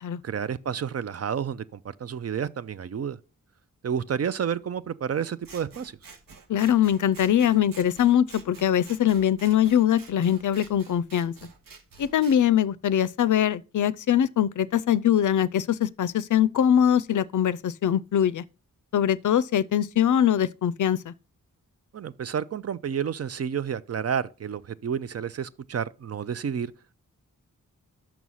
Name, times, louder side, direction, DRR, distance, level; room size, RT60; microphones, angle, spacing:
voice 1, 0.2-3.2 3.8-6.0 21.9-26.7, right 7 dB, 50° right, 0.4 m, -30 dB
Scissors, 5.4-12.4, right 5 dB, 85° right, 1.2 m, -49 dB
voice 2, 6.5-11.3 12.0-18.4 18.9-21.1, left 10 dB, 65° left, 0.5 m, -22 dB
6.2 x 6.0 x 5.5 m
wide cardioid pair, 120°, 33 cm